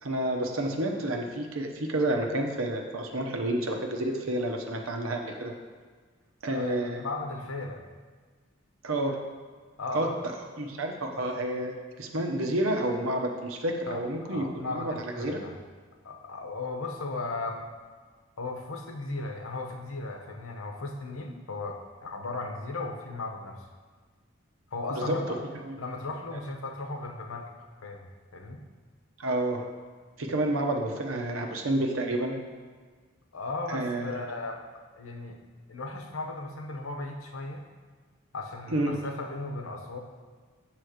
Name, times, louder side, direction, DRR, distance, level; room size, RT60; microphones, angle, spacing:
voice 1, 0.0-5.5 6.4-7.0 8.8-9.2 9.9-10.1 10.6-15.4 24.9-25.2 25.6-25.7 29.2-29.7 30.2-32.4 33.7-34.2 38.7-39.0, right 1 dB, 85° right, 2 dB, 0.9 m, -29 dB
voice 2, 6.5-7.8 9.8-10.2 13.9-15.5 16.0-17.6 18.4-23.6 24.7-25.4 25.8-28.6 33.3-34.6 35.0-35.4 35.7-37.6 38.3-40.0, left 3 dB, 80° left, 3 dB, 0.9 m, -36 dB
8.2 x 3.2 x 6.4 m, 1.5 s
head